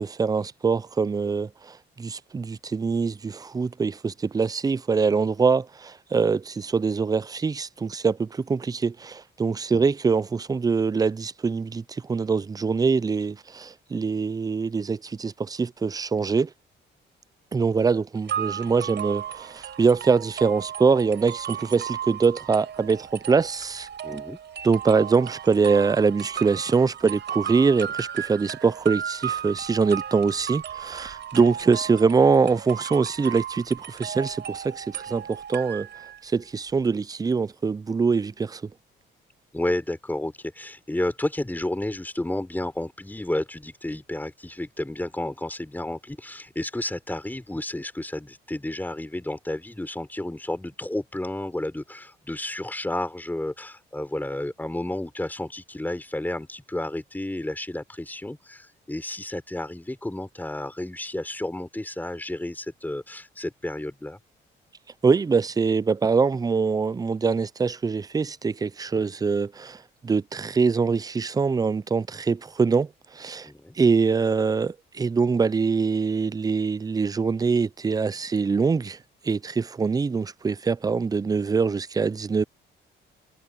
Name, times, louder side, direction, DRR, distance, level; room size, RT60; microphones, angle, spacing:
voice 1, 0.0-16.5 17.5-24.2 24.6-35.9 36.2-38.7 65.0-73.5 73.8-79.0 79.2-82.4, right 5 dB, 20° right, 0.4 m, -24 dB
sound 1, 18.3-36.2, right 9 dB, 60° right, 6.6 m, -35 dB
voice 2, 24.0-24.4 39.5-64.2 73.4-73.8, left 1 dB, 10° left, 4.8 m, -31 dB
cardioid pair, 90°, 20 cm